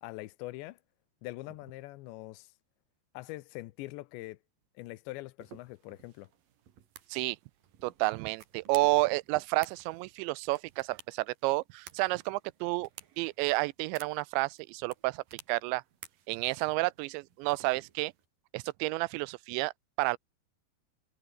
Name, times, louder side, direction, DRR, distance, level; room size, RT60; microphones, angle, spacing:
voice 1, 0.0-0.8 1.2-2.5 3.1-4.4 4.8-6.3, left 19 dB, 80° left, 2.9 m, -43 dB
sound 1, 5.4-18.3, right 9 dB, 55° right, 3.5 m, -55 dB
voice 2, 7.8-12.9 13.2-15.8 16.3-18.1 18.5-19.7 20.0-20.2, right 23 dB, 85° right, 2.8 m, -30 dB
omnidirectional pair, 5.2 m